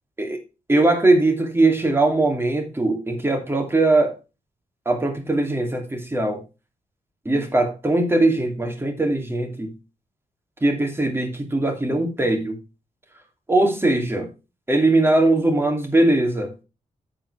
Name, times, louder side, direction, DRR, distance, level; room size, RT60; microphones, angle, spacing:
voice 1, 0.7-4.2 4.9-6.4 7.2-9.7 10.6-12.6 13.5-14.3 14.7-16.5, right 2 dB, 15° right, 2.6 m, -20 dB
10.5 x 7.6 x 3.3 m
wide cardioid pair, 120°, 14 cm